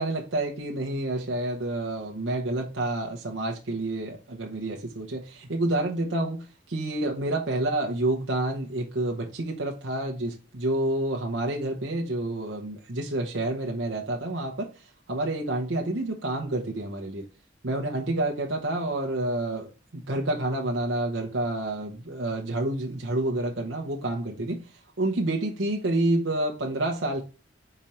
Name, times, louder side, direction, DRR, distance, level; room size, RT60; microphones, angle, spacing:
voice 1, 0.0-14.7 15.1-17.2 17.6-24.6 25.0-27.2, right 1 dB, 80° right, 1.0 m, -29 dB
5.0 x 4.5 x 4.3 m
head